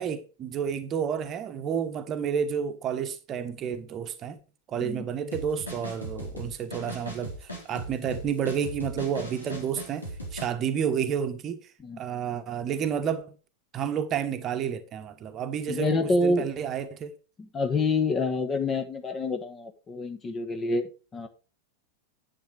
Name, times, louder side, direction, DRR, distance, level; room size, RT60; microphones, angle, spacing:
voice 1, 0.0-4.4 4.7-10.0 10.3-11.6 12.0-13.3 13.7-17.2, right 8 dB, 30° right, 1.2 m, -30 dB
sound 1, 5.3-10.5, right 1 dB, 80° left, 4.0 m, -38 dB
voice 2, 15.7-16.5 17.4-21.3, left 3 dB, 20° left, 1.4 m, -27 dB
10.5 x 8.0 x 4.8 m
figure-of-eight pair, 90°, 0 cm